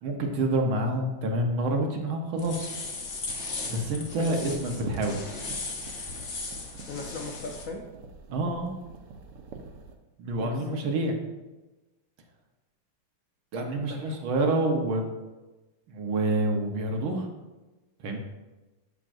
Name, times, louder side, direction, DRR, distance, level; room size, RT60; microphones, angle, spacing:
voice 1, 0.0-2.7 3.7-5.2 8.3-8.7 10.2-11.2 13.5-15.1 15.9-17.3 18.0-18.2, right 2 dB, 70° right, 2 dB, 1.8 m, -27 dB
sound 1, 2.4-7.7, left 3 dB, 45° left, 0.9 m, -37 dB
voice 2, 4.2-4.6 6.9-7.8 10.4-10.8 13.8-14.2, left 3 dB, 75° left, 1 dB, 0.7 m, -38 dB
sound 2, 4.4-10.0, right 4 dB, 85° right, 1.7 m, -47 dB
12.0 x 6.1 x 2.6 m, 1.1 s
omnidirectional pair, 2.4 m